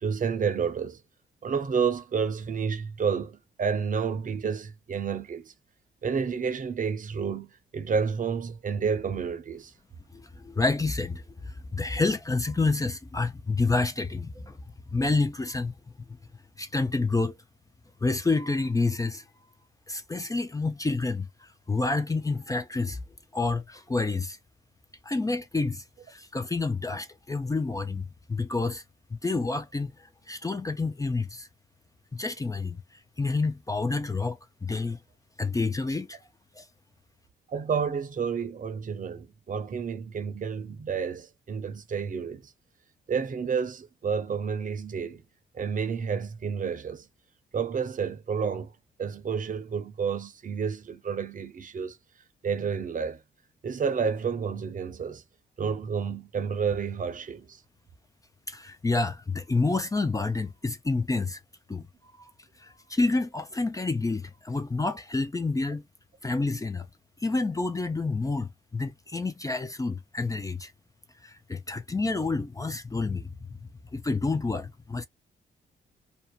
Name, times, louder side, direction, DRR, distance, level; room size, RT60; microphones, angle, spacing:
voice 1, 0.0-1.0 1.4-5.5 6.0-9.7 37.5-42.4 43.1-45.2 45.5-47.0 47.5-48.7 49.0-52.0 52.4-53.2 53.6-55.2 55.6-57.6, right 6 dB, 45° right, 0.8 m, -30 dB
voice 2, 10.1-14.6 14.9-15.7 16.6-17.3 18.0-19.2 19.9-23.0 23.3-24.4 25.0-28.8 29.1-31.5 32.1-35.0 35.4-36.2 36.6-36.7 58.5-61.4 61.7-62.3 62.6-65.8 66.2-66.9 67.2-70.7 71.2-73.3 73.9-75.1, left 3 dB, 20° left, 0.5 m, -29 dB
2.7 x 2.1 x 2.4 m
supercardioid pair, 55°, 19 cm